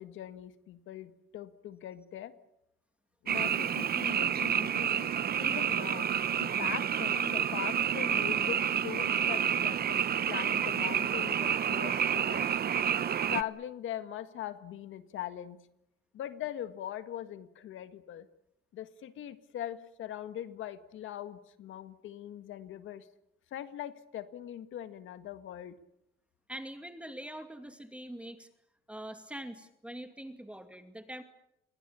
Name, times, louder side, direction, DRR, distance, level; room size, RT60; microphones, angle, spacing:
voice 1, 0.0-2.3 3.2-5.1 5.4-6.1 6.4-12.5 13.3-15.6 16.1-18.3 18.7-23.1 23.5-25.8, left 11 dB, 80° left, 10 dB, 1.9 m, -41 dB
Frog, 3.3-13.4, right 8 dB, 50° right, 1.0 m, -29 dB
voice 2, 26.5-28.5 28.9-31.2, right 1 dB, 5° right, 6 dB, 2.5 m, -43 dB
28.5 x 23.0 x 7.1 m, 0.83 s
cardioid pair, 90°, 20 cm